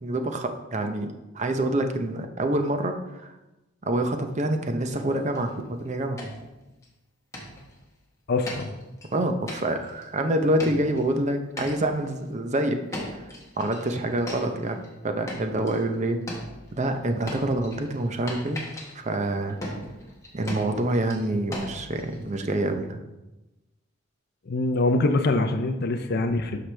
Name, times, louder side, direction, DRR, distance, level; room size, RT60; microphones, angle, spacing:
voice 1, 0.0-3.3 3.8-6.2 9.1-12.8 13.1-13.3 13.6-14.8 15.0-16.2 16.7-18.6 18.9-19.6 20.3-23.0, right 1 dB, 35° right, 6 dB, 0.7 m, -26 dB
sound 1, 4.9-5.5 5.9-6.0 6.2-6.9 7.3-7.8 8.5-9.1 9.5-10.0 10.6-11.2 11.6-12.1 12.9-14.9 15.3-15.9 16.3-22.5, left 1 dB, 15° left, 1.4 m, -38 dB
voice 2, 8.3-8.7 24.5-26.6, left 2 dB, 50° left, 5 dB, 0.5 m, -24 dB
12.0 x 5.0 x 3.3 m, 1.0 s
head